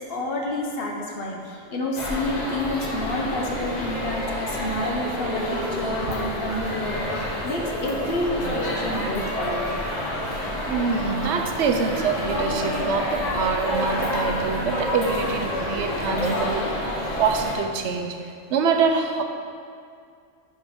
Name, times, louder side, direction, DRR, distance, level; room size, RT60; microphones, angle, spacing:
voice 1, 0.0-9.7, left 1 dB, 55° left, 0 dB, 1.0 m, -29 dB
sound 1, 2.0-17.5, left 1 dB, 35° left, 1.2 m, -28 dB
voice 2, 10.7-16.9 17.2-19.2, right 5 dB, 75° right, 5 dB, 0.9 m, -25 dB
11.0 x 4.2 x 3.6 m, 2.2 s
omnidirectional pair, 1.2 m